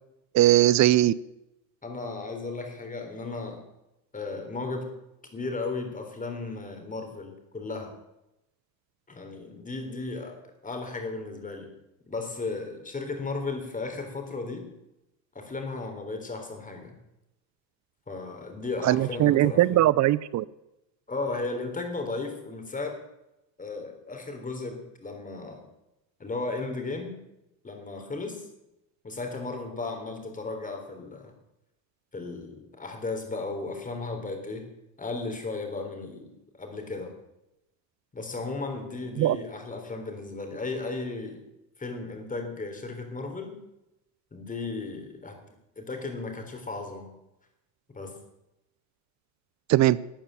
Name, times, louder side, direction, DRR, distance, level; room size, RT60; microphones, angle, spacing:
voice 1, 0.3-1.1 18.8-20.4 39.2-39.4 49.7-50.0, right 14 dB, 35° right, 20 dB, 0.5 m, -20 dB
voice 2, 1.8-3.6 4.1-4.9 5.3-7.9 9.1-11.7 12.1-14.7 15.4-17.0 18.1-19.8 21.1-23.0 23.6-25.6 26.2-27.2 27.6-28.5 29.0-31.3 32.1-34.7 35.0-37.1 38.1-41.4 41.8-43.6 44.3-45.4 45.8-47.1 47.9-48.2, left 3 dB, 15° left, 4 dB, 3.7 m, -35 dB
13.0 x 8.9 x 9.0 m, 0.90 s
supercardioid pair, 120°, 48 cm